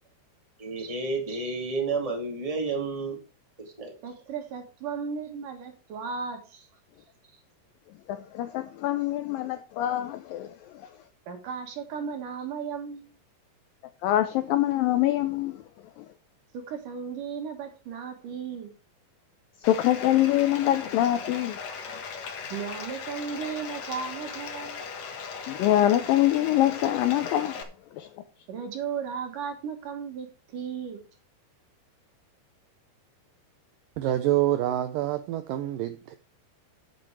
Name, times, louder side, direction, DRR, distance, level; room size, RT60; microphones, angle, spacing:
voice 1, 0.6-3.2 3.8-3.9, right 3 dB, 15° right, 1.4 m, -30 dB
voice 2, 4.0-6.7 11.3-13.1 16.7-18.7 22.4-24.8 28.5-31.0, right 6 dB, 60° right, 2.9 m, -35 dB
voice 3, 7.9-11.0 14.0-16.1 19.6-21.6 25.5-27.6 27.9-28.2, left 13 dB, 80° left, 2.0 m, -25 dB
Bathtub (filling or washing), 19.6-27.6, left 5 dB, 60° left, 1.7 m, -38 dB
voice 4, 34.0-36.1, right 13 dB, 80° right, 2.0 m, -26 dB
9.6 x 7.7 x 4.8 m
omnidirectional pair, 4.8 m